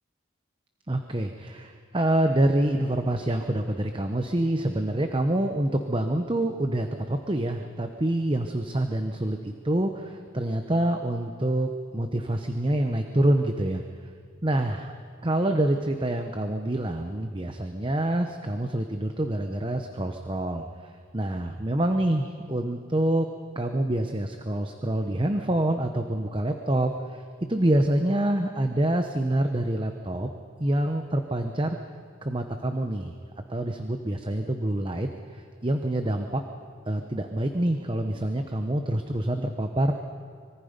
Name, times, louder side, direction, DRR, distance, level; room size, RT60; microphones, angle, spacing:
voice 1, 0.9-13.8 14.4-14.8 15.2-20.7 21.1-23.3 23.6-27.2 27.5-30.3 30.6-31.8 32.2-33.1 33.5-36.4 36.9-39.9, right 1 dB, 25° right, 6 dB, 0.9 m, -26 dB
25.0 x 22.5 x 5.2 m, 2.2 s
head